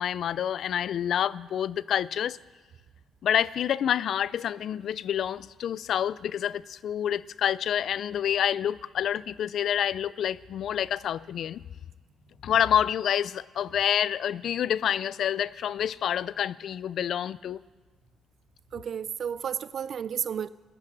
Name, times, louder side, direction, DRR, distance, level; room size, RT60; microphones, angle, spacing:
voice 1, 0.0-2.4 3.2-11.6 12.4-17.6, left 9 dB, 65° left, 0.3 m, -28 dB
voice 2, 18.7-20.5, right 8 dB, 60° right, 0.4 m, -32 dB
15.0 x 11.5 x 6.0 m
cardioid pair, 90°, 0 cm